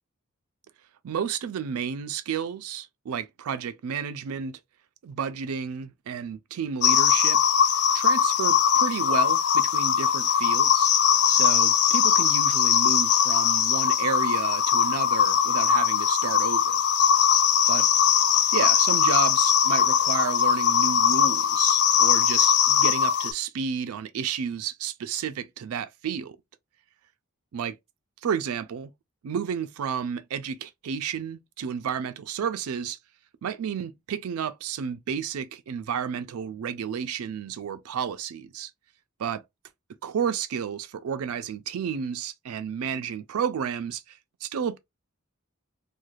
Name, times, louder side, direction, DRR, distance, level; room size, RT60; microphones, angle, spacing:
voice 1, 1.0-4.6 5.0-7.4 7.9-10.9 11.3-16.8 17.7-17.9 18.5-26.4 27.5-27.8 28.2-28.9 29.2-33.0 33.4-38.7 39.2-39.4 40.0-44.8, right 7 dB, 80° right, 0.4 m, -31 dB
sound 1, 6.8-23.3, left 8 dB, 55° left, 0.4 m, -21 dB
3.0 x 2.3 x 2.3 m
head